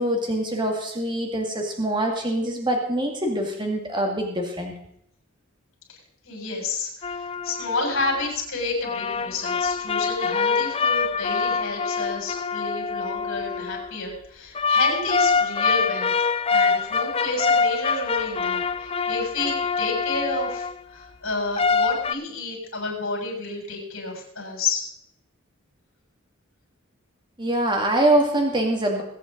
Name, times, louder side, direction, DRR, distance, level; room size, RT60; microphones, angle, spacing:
voice 1, 0.0-4.7 27.4-29.0, right 1 dB, 20° right, 1 dB, 2.2 m, -24 dB
voice 2, 6.2-16.1 16.5-20.7 20.9-24.8, left 3 dB, 70° left, 0 dB, 6.9 m, -30 dB
sound 1, 7.0-8.3 8.8-13.9 14.5-20.7 21.6-22.1, left 5 dB, 25° left, 0.5 m, -25 dB
21.5 x 9.2 x 3.9 m, 0.70 s
head